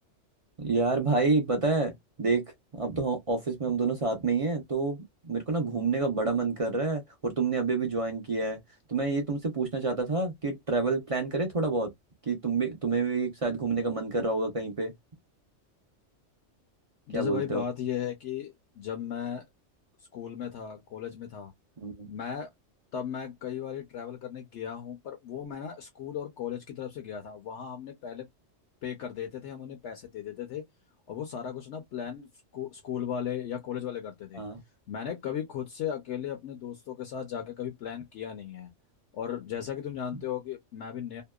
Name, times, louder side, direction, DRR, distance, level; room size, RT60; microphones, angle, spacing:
voice 1, 0.6-2.4 2.7-8.6 8.9-11.9 12.3-14.9 17.1-17.6 21.8-22.1 34.3-34.6, right 3 dB, 40° right, 0.5 m, -28 dB
voice 2, 17.1-19.4 20.1-21.5 22.0-22.5 22.9-28.3 28.8-30.6 31.1-32.3 32.5-34.4 34.9-38.7 39.1-41.2, left 9 dB, 70° left, 0.9 m, -36 dB
2.8 x 2.1 x 2.2 m
omnidirectional pair, 1.3 m